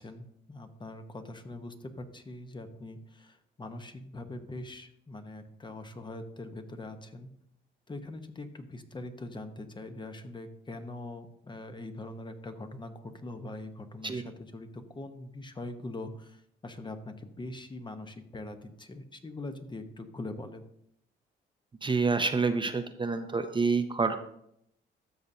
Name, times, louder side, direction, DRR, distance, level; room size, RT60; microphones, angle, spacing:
voice 1, 0.0-7.3 7.9-20.6, left 2 dB, 25° left, 7 dB, 0.9 m, -42 dB
voice 2, 21.8-24.2, right 4 dB, 25° right, 7 dB, 0.6 m, -28 dB
12.5 x 6.7 x 2.7 m, 0.74 s
cardioid pair, 90°, 20 cm